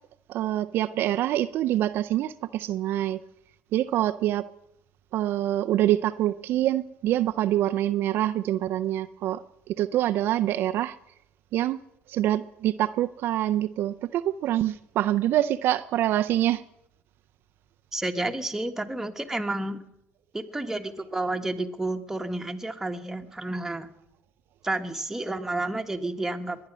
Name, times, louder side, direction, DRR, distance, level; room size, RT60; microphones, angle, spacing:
voice 1, 0.3-3.2 3.7-4.4 5.1-9.4 9.7-11.0 11.5-11.8 12.1-16.6, right 13 dB, 65° right, 10 dB, 0.5 m, -25 dB
voice 2, 17.9-19.8 20.3-23.9 24.6-26.6, right 2 dB, 10° right, 5 dB, 1.5 m, -30 dB
21.0 x 9.6 x 6.2 m, 0.81 s
supercardioid pair, 90°, 4 cm